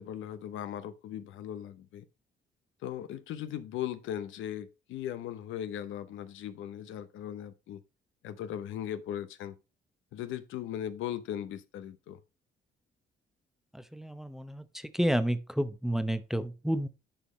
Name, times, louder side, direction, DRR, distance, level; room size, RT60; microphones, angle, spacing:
voice 1, 0.0-2.1 2.8-7.8 8.2-9.5 10.1-12.2, left 10 dB, 85° left, 0.8 m, -38 dB
voice 2, 13.7-16.9, right 1 dB, ahead, 0.7 m, -31 dB
10.0 x 5.6 x 3.1 m
cardioid pair, 90°, 20 cm